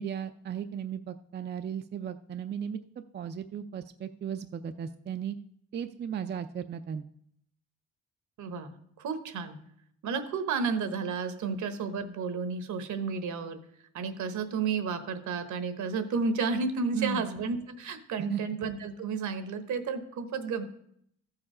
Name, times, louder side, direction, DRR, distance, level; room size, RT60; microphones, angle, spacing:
voice 1, 0.0-5.3 5.7-7.0 16.9-17.2 18.2-18.4, right 8 dB, 35° right, 8 dB, 0.5 m, -36 dB
voice 2, 8.4-9.6 10.0-13.6 13.9-20.6, right 5 dB, 75° right, 9 dB, 1.2 m, -32 dB
13.5 x 4.8 x 4.9 m, 0.71 s
cardioid pair, 90°, 30 cm